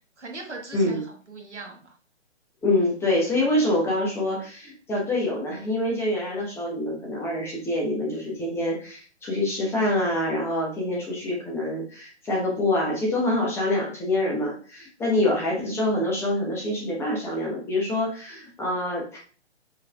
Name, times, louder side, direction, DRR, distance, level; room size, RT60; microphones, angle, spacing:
voice 1, 0.2-1.9 15.6-15.9, right 3 dB, 90° right, 2 dB, 1.3 m, -40 dB
voice 2, 2.6-19.2, left 1 dB, 5° left, -3 dB, 0.9 m, -26 dB
5.3 x 3.5 x 2.3 m, 0.39 s
figure-of-eight pair, 135°, 34 cm